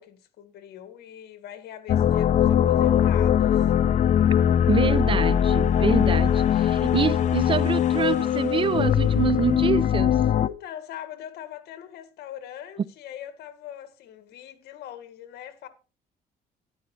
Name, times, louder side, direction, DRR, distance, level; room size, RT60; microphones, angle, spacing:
voice 1, 0.0-3.7 10.3-15.7, left 10 dB, 75° left, 1.9 m, -41 dB
sound 1, 1.9-10.5, left 9 dB, 45° left, 0.5 m, -21 dB
voice 2, 4.7-10.2, right 7 dB, 30° right, 0.5 m, -26 dB
12.5 x 11.0 x 3.2 m
cardioid pair, 110°, 17 cm